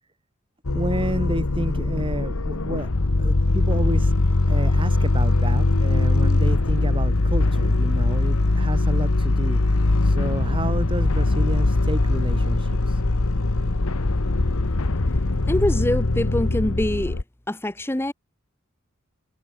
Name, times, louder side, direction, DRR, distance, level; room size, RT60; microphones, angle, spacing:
sound 1, 0.7-17.2, left 2 dB, 90° left, 1.2 m, -21 dB
voice 1, 0.7-2.9 3.2-4.1 4.5-9.6 10.0-13.0, right 1 dB, 25° right, 2.6 m, -30 dB
voice 2, 15.5-17.2 17.5-18.1, left 1 dB, 10° left, 0.8 m, -24 dB
head